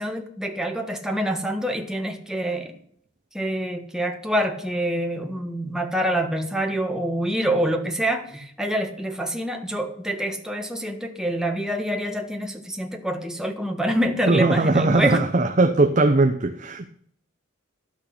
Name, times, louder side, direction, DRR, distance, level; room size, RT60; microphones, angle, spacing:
voice 1, 0.0-2.7 3.3-15.2, right 1 dB, 5° right, 1.4 m, -26 dB
voice 2, 14.3-16.9, right 2 dB, 35° right, 0.7 m, -19 dB
12.5 x 6.4 x 8.6 m
head